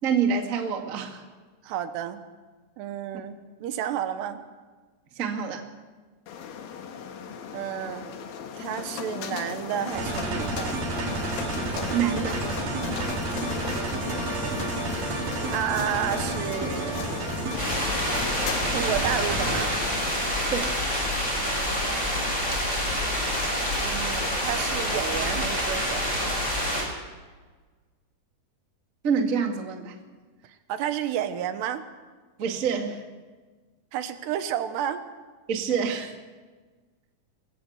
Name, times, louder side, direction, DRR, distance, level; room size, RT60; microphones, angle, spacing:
voice 1, 0.0-1.2 5.1-5.6 11.9-12.4 20.5-20.7 29.0-29.9 32.4-33.0 35.5-36.1, right 6 dB, 35° right, 4 dB, 1.3 m, -26 dB
voice 2, 1.6-2.3 2.8-4.4 7.5-8.1 8.6-10.9 15.4-17.0 18.7-19.7 23.8-26.0 30.7-31.8 33.9-35.0, right 10 dB, 80° right, 10 dB, 3.3 m, -31 dB
sound 1, 6.3-20.7, left 7 dB, 65° left, 2.9 m, -36 dB
sound 2, 9.9-19.8, right 3 dB, 60° right, 5.0 m, -31 dB
sound 3, 17.6-26.8, equal, 10° left, 6.2 m, -27 dB
22.5 x 15.5 x 8.1 m, 1.4 s
omnidirectional pair, 4.8 m